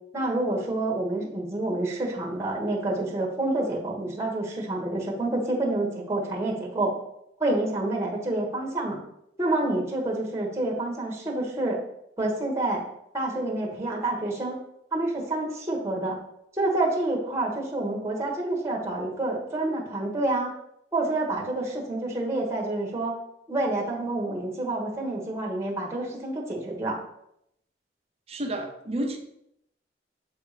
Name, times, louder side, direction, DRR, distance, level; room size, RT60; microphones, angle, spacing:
voice 1, 0.1-6.9 7.4-9.0 9.4-11.8 12.2-12.8 13.1-14.6 14.9-16.2 16.6-20.5 20.9-23.2 23.5-27.0, right 2 dB, 15° right, -1 dB, 1.3 m, -28 dB
voice 2, 28.3-29.2, right 1 dB, 35° right, 4 dB, 0.8 m, -30 dB
6.7 x 3.5 x 4.9 m, 0.77 s
head